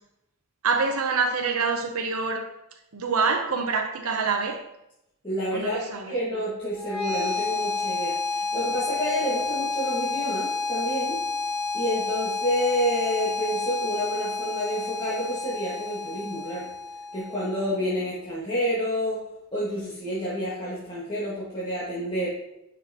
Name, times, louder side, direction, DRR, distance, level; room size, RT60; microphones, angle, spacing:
voice 1, 0.6-2.5 2.9-4.6 5.5-6.2, right 4 dB, 85° right, 3 dB, 0.7 m, -26 dB
voice 2, 5.2-11.2 11.7-16.7 17.1-19.2 19.5-22.3, equal, 25° left, -9 dB, 1.8 m, -29 dB
sound 1, 6.7-17.7, left 3 dB, 75° left, 1.7 m, -30 dB
10.0 x 5.7 x 2.9 m, 0.87 s
head